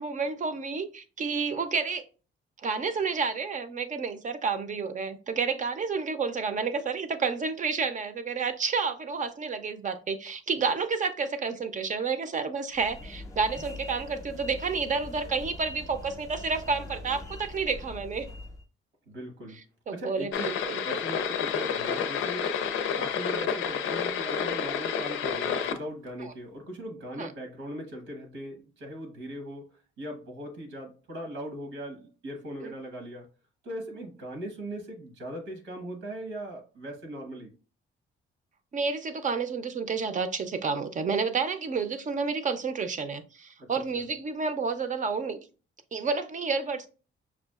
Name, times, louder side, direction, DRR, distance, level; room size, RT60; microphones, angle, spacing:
voice 1, 0.0-2.1 2.6-18.3 19.9-20.8 26.2-26.3 27.2-27.3 32.6-32.7 38.7-45.4 45.9-46.9, right 5 dB, 40° right, 0.6 m, -30 dB
sound 1, 12.7-18.7, left 2 dB, 15° left, 0.7 m, -42 dB
voice 2, 19.1-19.6 19.9-20.6 20.8-22.5 22.9-33.3 33.6-37.5 43.6-44.1, equal, 85° right, 1.3 m, -39 dB
sound 2, 20.3-25.8, left 7 dB, 85° left, 0.5 m, -29 dB
6.0 x 2.4 x 2.4 m
cardioid pair, 90°, 20 cm